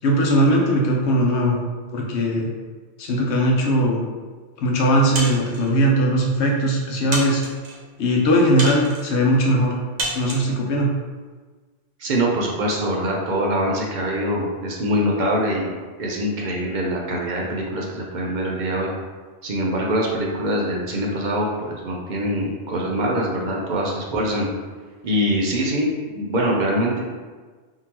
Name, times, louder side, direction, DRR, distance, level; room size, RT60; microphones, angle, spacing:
voice 1, 0.0-1.6 1.9-2.5 3.0-4.0 4.6-7.4 8.0-9.8 10.1-10.9, equal, 75° left, -1 dB, 1.0 m, -19 dB
sound 1, 5.1-5.7 6.4-6.5 7.1-7.8 8.6-9.1 10.0-10.5, right 2 dB, 90° right, 1.1 m, -29 dB
voice 2, 12.0-18.9 19.4-24.5 25.0-25.9 26.1-27.0, equal, 50° right, -2 dB, 0.6 m, -23 dB
3.7 x 2.7 x 2.9 m, 1.4 s
omnidirectional pair, 1.2 m